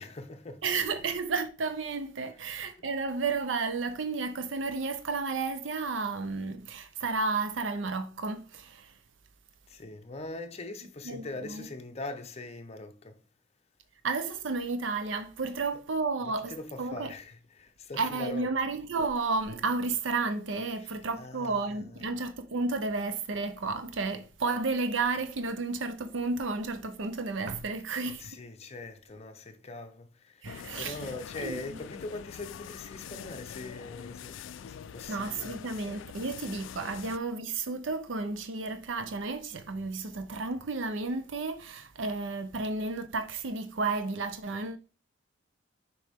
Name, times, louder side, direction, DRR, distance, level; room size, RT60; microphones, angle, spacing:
voice 1, 0.0-0.7 9.7-13.2 16.5-18.5 20.8-21.6 22.0-22.1 28.0-35.6, left 2 dB, 35° left, 0.7 m, -42 dB
voice 2, 0.6-9.0 11.0-11.7 14.0-17.1 18.0-28.3 30.4-31.1 31.4-31.8 35.1-44.8, right 3 dB, 75° right, 0.6 m, -32 dB
sound 1, 30.4-37.2, left 8 dB, 80° left, 0.3 m, -44 dB
6.5 x 4.5 x 3.6 m
head